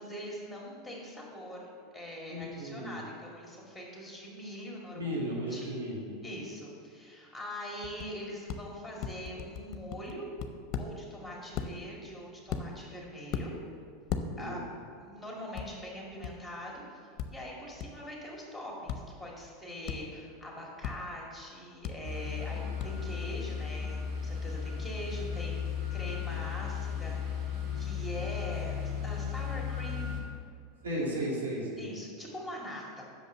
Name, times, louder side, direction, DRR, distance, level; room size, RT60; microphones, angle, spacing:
voice 1, 0.0-1.6 1.9-5.1 5.5-5.7 6.2-10.3 10.8-13.5 14.4-14.6 15.0-17.0 17.3-30.1 31.8-33.0, equal, ahead, -3 dB, 2.3 m, -42 dB
voice 2, 2.3-3.0 4.9-6.2 14.1-14.6 30.8-31.9, equal, 85° right, -4 dB, 2.1 m, -35 dB
sound 1, 7.8-8.1 8.5-8.6 9.0-10.9 11.5-11.7 12.5-12.9 13.3-13.5 14.1-14.2 15.5-15.7 16.2-16.3 17.2-17.3 17.8-17.9 18.9-19.0 19.9-20.0 20.8-20.9 21.8-21.9 22.8-22.9, left 8 dB, 50° left, 0.6 m, -35 dB
sound 2, 22.0-30.2, left 7 dB, 55° right, 2.1 m, -35 dB
6.5 x 5.3 x 6.9 m, 2.2 s
hypercardioid pair, 95°, 0 cm